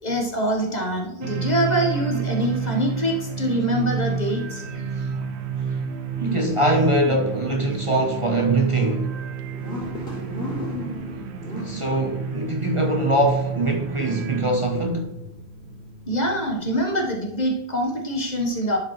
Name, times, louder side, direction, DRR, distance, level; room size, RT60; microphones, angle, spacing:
voice 1, 0.0-4.6 16.1-18.8, equal, 40° left, 1.4 m, -24 dB
sound 1, 1.2-14.4, right 6 dB, 80° right, 1.0 m, -29 dB
sound 2, 3.7-17.0, equal, 85° left, 3.2 m, -37 dB
voice 2, 6.2-9.2 11.6-15.1, right 1 dB, 30° right, 1.0 m, -23 dB
11.0 x 4.8 x 3.2 m
omnidirectional pair, 1.1 m